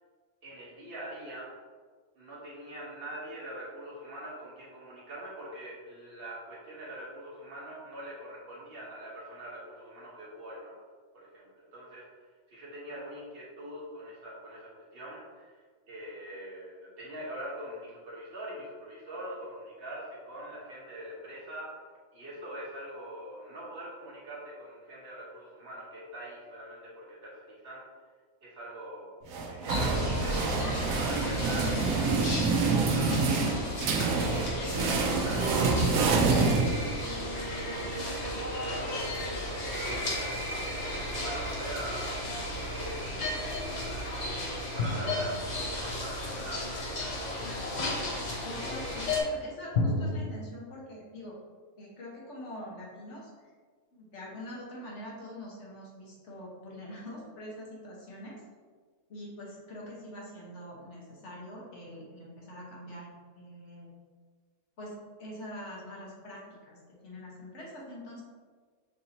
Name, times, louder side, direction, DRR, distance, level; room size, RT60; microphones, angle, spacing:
voice 1, 0.4-1.5 2.2-10.8 11.1-12.1 12.5-15.6 15.9-21.7 22.1-27.8 28.4-33.5 34.1-37.4 37.9-42.2 42.7-43.4 44.5-47.5, right 1 dB, 50° right, -4 dB, 1.2 m, -43 dB
sound 1, 29.3-37.2, right 4 dB, 85° right, 1.0 m, -27 dB
sound 2, 29.7-49.2, left 1 dB, 40° left, 0.8 m, -34 dB
sound 3, 44.8-46.4 49.7-50.3, left 2 dB, 85° left, 1.0 m, -32 dB
voice 2, 48.4-51.4 51.8-53.5 53.9-58.4 59.1-63.1 63.4-63.9 64.8-66.8 67.0-68.2, left 1 dB, 65° left, -4 dB, 1.4 m, -44 dB
6.1 x 2.7 x 2.8 m, 1.5 s
omnidirectional pair, 1.3 m